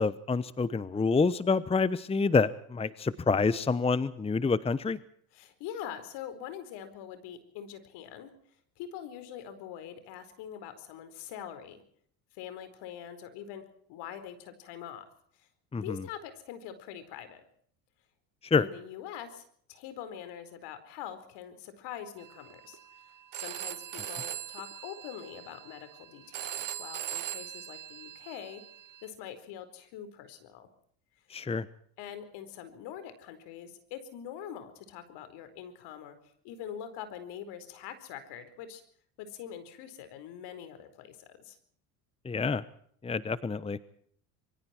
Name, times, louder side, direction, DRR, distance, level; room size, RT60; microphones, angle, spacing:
voice 1, 0.0-5.0 15.7-16.0 18.5-18.7 31.3-31.7 42.2-42.6 43.0-43.8, left 4 dB, 15° left, 17 dB, 0.9 m, -27 dB
voice 2, 5.3-8.3 8.8-11.8 12.3-13.6 13.9-15.1 15.4-15.5 15.8-17.4 18.6-22.8 23.3-28.6 29.0-30.7 32.0-36.2 36.4-38.8 39.2-41.6, left 9 dB, 65° left, 10 dB, 4.6 m, -44 dB
Telephone, 22.2-29.1, right 11 dB, 45° right, 1.8 m, -41 dB
26.0 x 23.0 x 4.5 m, 0.64 s
hypercardioid pair, 85°, 44 cm